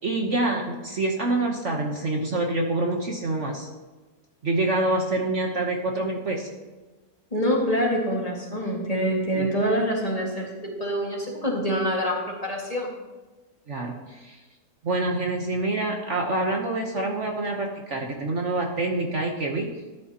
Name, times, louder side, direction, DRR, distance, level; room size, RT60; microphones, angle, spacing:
voice 1, 0.0-3.7 4.4-6.5 9.4-9.5 13.7-14.4 14.8-19.7, right 2 dB, 50° right, 1 dB, 1.2 m, -26 dB
voice 2, 7.3-12.9, equal, 20° left, -2 dB, 1.9 m, -26 dB
14.0 x 10.0 x 2.9 m, 1.2 s
omnidirectional pair, 1.8 m